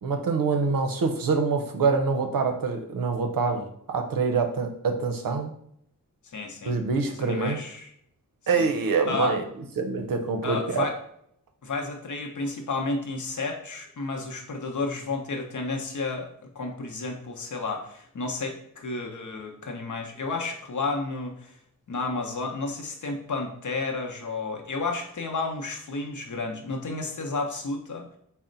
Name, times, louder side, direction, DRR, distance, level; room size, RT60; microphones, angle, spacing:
voice 1, 0.0-5.5 6.7-7.6 8.5-9.4 9.8-10.8, right 4 dB, 90° right, 5 dB, 0.6 m, -25 dB
voice 2, 6.2-6.7 7.1-7.9 8.5-8.7 9.0-9.4 10.4-11.0 11.6-16.3 16.5-21.5 21.9-28.1, left 3 dB, 65° left, 2 dB, 0.7 m, -31 dB
4.2 x 2.1 x 3.8 m, 0.70 s
wide cardioid pair, 115°, 33 cm